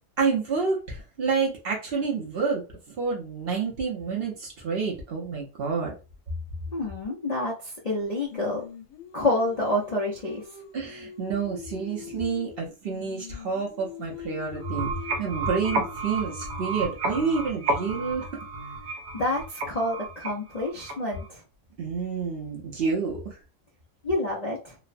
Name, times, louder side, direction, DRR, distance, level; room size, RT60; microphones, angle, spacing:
voice 1, 0.2-2.6 2.9-5.9 10.7-14.9 15.2-18.3 21.8-23.4, right 5 dB, 55° right, -1 dB, 0.7 m, -29 dB
voice 2, 6.7-8.6 9.1-10.4 19.1-21.4 24.0-24.7, left 1 dB, 65° left, -3 dB, 0.4 m, -28 dB
Singing, 8.3-12.6 12.9-18.9, left 9 dB, 85° left, 1.3 m, -44 dB
sound 1, 14.5-21.3, right 3 dB, 85° right, 1.2 m, -32 dB
3.1 x 2.0 x 2.5 m, 0.30 s
omnidirectional pair, 1.7 m